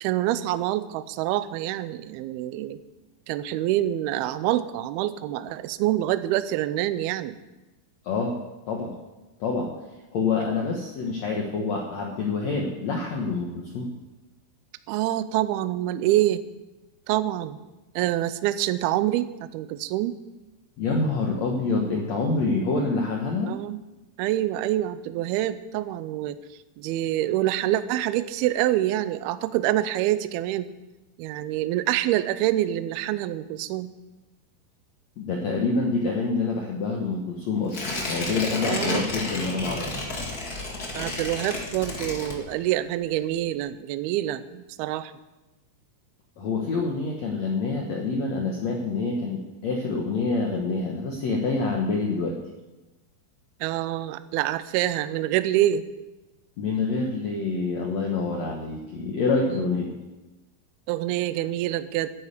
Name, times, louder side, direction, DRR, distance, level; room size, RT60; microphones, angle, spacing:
voice 1, 0.0-2.8 3.3-7.4 14.9-16.4 17.1-17.6 18.0-20.1 23.4-23.8 24.2-26.4 26.8-30.7 31.2-33.9 38.7-39.1 40.9-45.1 53.6-55.9 59.5-59.7 60.9-62.1, right 14 dB, 85° right, 13 dB, 2.2 m, -26 dB
voice 2, 8.0-8.3 8.7-8.9 9.4-9.7 10.1-13.9 20.8-23.5 35.2-40.1 46.4-52.4 56.6-59.9, left 3 dB, 85° left, 0 dB, 1.5 m, -27 dB
Tearing, 37.7-42.8 43.2-43.3, left 2 dB, 55° left, 1.0 m, -32 dB
11.0 x 9.3 x 8.2 m, 1.1 s
omnidirectional pair, 5.2 m